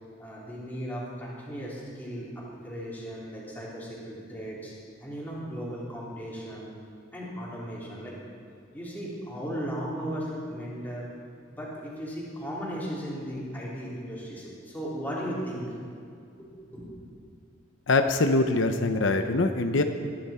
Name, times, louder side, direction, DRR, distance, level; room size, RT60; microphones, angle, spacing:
voice 1, 0.2-4.7 5.0-6.7 7.1-8.2 8.7-11.1 11.5-15.7 16.4-16.9, equal, 10° left, -7 dB, 3.5 m, -36 dB
voice 2, 17.9-19.8, left 2 dB, 80° left, 6 dB, 0.7 m, -23 dB
20.5 x 11.0 x 4.4 m, 2.4 s
head